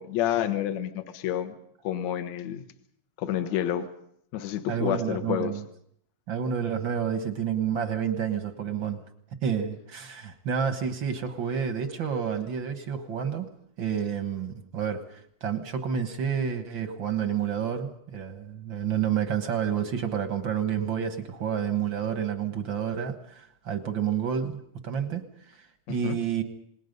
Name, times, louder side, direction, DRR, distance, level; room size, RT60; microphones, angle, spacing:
voice 1, 0.0-1.5 1.8-2.6 3.2-3.9 4.3-5.5 26.0-26.2, left 11 dB, 60° left, 7 dB, 2.2 m, -29 dB
voice 2, 4.7-5.6 6.3-9.0 9.4-13.5 13.8-26.4, right 8 dB, 55° right, 7 dB, 1.3 m, -29 dB
28.0 x 20.0 x 5.4 m, 0.70 s
omnidirectional pair, 3.9 m